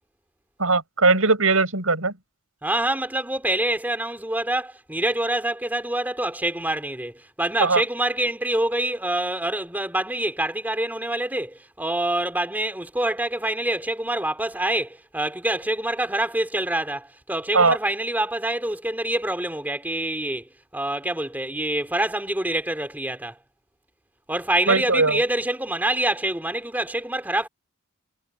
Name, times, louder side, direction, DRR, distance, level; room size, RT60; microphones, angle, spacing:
voice 1, 0.6-2.1 7.6-7.8 17.5-17.8 24.7-25.2, right 3 dB, 75° right, 7.6 m, -19 dB
voice 2, 2.6-23.4 24.3-27.5, right 1 dB, 10° right, 2.7 m, -26 dB
head